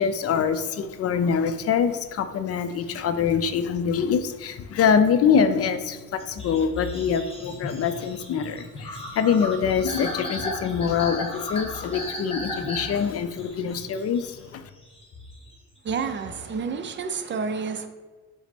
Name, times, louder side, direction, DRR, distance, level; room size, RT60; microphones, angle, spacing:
voice 1, 0.0-14.6, left 7 dB, 50° left, 0.4 m, -24 dB
sound 1, 6.2-16.6, left 2 dB, 20° left, 1.1 m, -36 dB
voice 2, 15.8-17.9, right 5 dB, 40° right, 0.4 m, -29 dB
5.7 x 2.1 x 4.3 m
cardioid pair, 90°, 30 cm